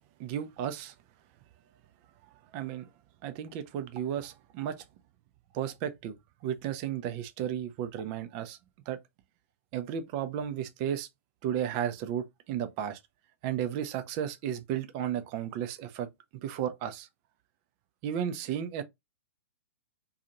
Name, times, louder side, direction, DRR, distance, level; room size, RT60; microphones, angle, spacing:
voice 1, 0.2-0.9 2.5-2.9 3.2-4.8 5.5-6.2 6.4-8.6 8.9-9.0 9.7-11.1 11.4-13.0 13.4-16.1 16.4-17.1 18.0-18.8, right 9 dB, 35° right, 0.5 m, -33 dB
2.6 x 2.4 x 2.9 m
hypercardioid pair, 120°, 8 cm